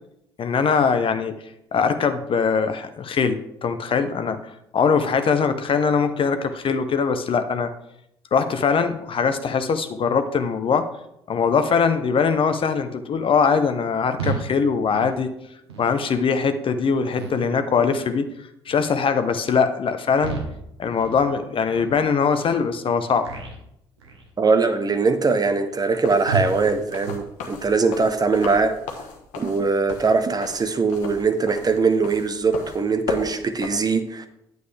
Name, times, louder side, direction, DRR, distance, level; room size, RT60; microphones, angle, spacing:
voice 1, 0.4-1.4 1.7-4.4 4.7-7.7 8.3-10.9 11.3-15.3 15.8-18.3 18.7-20.4 20.8-23.3, left 5 dB, 40° left, 9 dB, 0.7 m, -21 dB
sound 1, 14.2-14.5 14.9-15.2 15.7-15.9 16.4-16.6 17.2-17.5 17.9-18.2 18.7-18.9 19.4-19.6 20.2-20.6 21.0-21.3 21.7-21.9 22.5-22.6 23.2-23.6 24.0-24.3 24.8-25.0 25.5-25.6 26.3-26.6 27.0-27.3, right 4 dB, 85° right, 1.3 m, -32 dB
voice 2, 24.4-28.8 29.4-34.3, right 4 dB, 30° right, 9 dB, 0.9 m, -21 dB
sound 2, 25.9-33.7, left 5 dB, 65° left, 1.3 m, -35 dB
9.5 x 7.8 x 3.4 m, 0.81 s
figure-of-eight pair, 55°, 14 cm